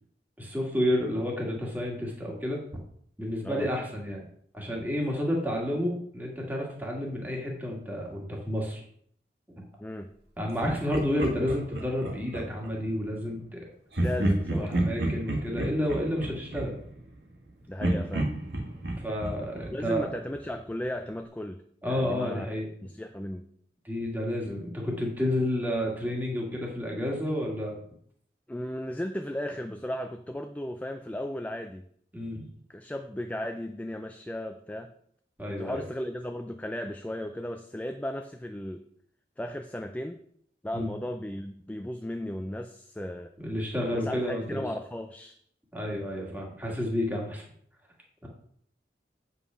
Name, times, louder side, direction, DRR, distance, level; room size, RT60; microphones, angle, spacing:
voice 1, 0.4-2.6 3.2-4.3 4.5-8.8 10.4-13.6 14.5-16.7 19.0-20.1 21.8-22.7 23.8-27.8 32.1-32.5 35.4-35.8 40.7-40.9 43.4-44.6 45.7-47.4 48.2-48.3, left 1 dB, 10° right, -1 dB, 1.8 m, -30 dB
voice 2, 9.8-10.1 14.0-14.8 17.7-18.3 19.7-22.5 22.8-23.5 28.5-31.8 32.7-34.9 35.5-38.8 39.4-40.2 40.6-43.3 43.9-45.4, left 1 dB, 10° left, 6 dB, 0.4 m, -35 dB
Laughter, 10.6-12.7 13.9-17.4 17.8-20.6, right 1 dB, 75° right, 1.7 m, -31 dB
8.2 x 5.6 x 5.6 m, 0.66 s
head